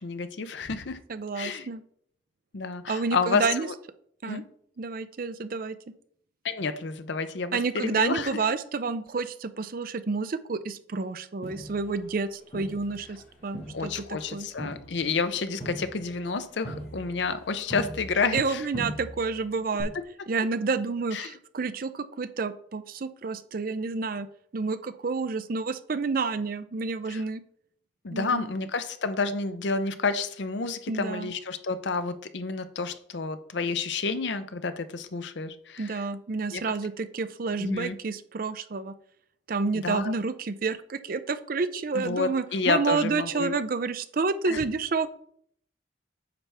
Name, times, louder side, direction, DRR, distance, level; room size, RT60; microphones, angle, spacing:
voice 1, 0.0-1.0 1.4-1.7 2.5-3.7 4.2-4.4 6.4-8.4 13.7-18.7 21.1-21.4 27.1-27.2 28.0-36.1 36.5-36.7 37.6-38.0 39.7-40.1 41.9-43.5 44.5-44.6, left 4 dB, 70° left, 11 dB, 0.6 m, -30 dB
voice 2, 1.1-1.8 2.9-3.7 4.2-4.4 4.8-5.8 7.5-14.5 18.3-19.9 20.3-24.3 24.5-27.4 28.1-28.5 30.9-31.3 35.8-38.9 39.5-45.1, right 4 dB, 50° right, 12 dB, 0.5 m, -29 dB
Crowd, 11.4-13.2 13.5-18.5 18.7-19.4 19.8-19.9, right 1 dB, 35° left, 1.7 m, -41 dB
9.0 x 5.6 x 3.4 m, 0.65 s
head